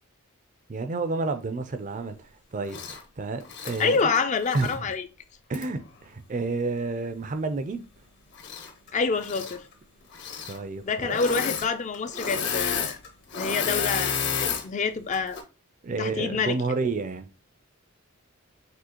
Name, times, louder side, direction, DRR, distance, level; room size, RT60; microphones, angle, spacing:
voice 1, 0.7-2.2 2.5-4.1 4.5-4.8 5.5-5.8 6.0-7.8 10.5-11.2 15.8-17.3, right 3 dB, 35° right, 0.4 m, -30 dB
Engine / Mechanisms, 2.7-3.0 3.4-4.8 5.5-5.6 8.3-8.9 9.2-9.6 10.1-10.6 11.1-11.7 11.9-14.6 15.1-15.4, left 6 dB, 50° left, 0.8 m, -31 dB
voice 2, 3.8-5.1 8.9-9.6 10.8-13.0 13.4-15.4 16.0-16.6, left 5 dB, 30° left, 0.3 m, -27 dB
6.1 x 2.8 x 2.9 m
head